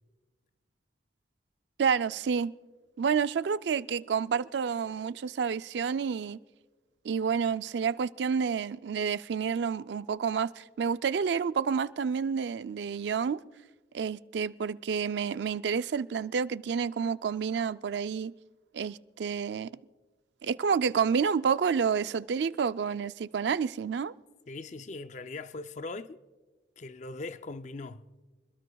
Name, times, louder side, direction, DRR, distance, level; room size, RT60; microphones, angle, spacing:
voice 1, 1.8-2.5 3.0-6.4 7.0-13.4 13.9-18.3 18.7-19.7 20.4-24.1, right 6 dB, 70° right, 0.4 m, -29 dB
voice 2, 24.5-26.2 26.8-28.1, left 3 dB, 40° left, 0.4 m, -40 dB
26.5 x 21.0 x 2.3 m
head